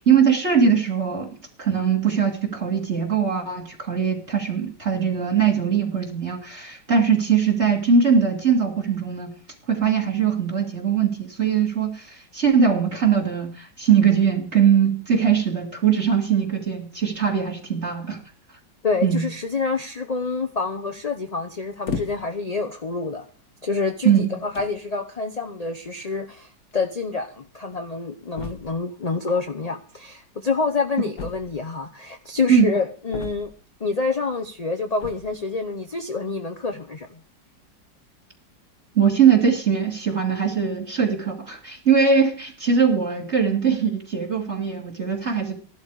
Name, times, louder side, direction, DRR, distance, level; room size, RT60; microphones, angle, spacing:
voice 1, 0.1-1.3 1.6-9.3 9.7-18.2 19.0-19.2 24.0-24.4 32.5-32.7 38.9-45.5, right 7 dB, 35° right, 3 dB, 2.6 m, -21 dB
voice 2, 18.8-23.2 23.6-33.5 33.8-37.2, left 4 dB, 35° left, 5 dB, 0.6 m, -27 dB
sound 1, 21.9-22.5 23.2-23.4 24.2-24.3 24.5-24.9 26.1-26.2 26.4-26.5 26.7-26.8 28.3-28.9 31.2-31.8 33.1-33.8 34.9-35.4, left 5 dB, 65° left, 1.8 m, -35 dB
14.5 x 11.5 x 4.8 m, 0.42 s
omnidirectional pair, 1.9 m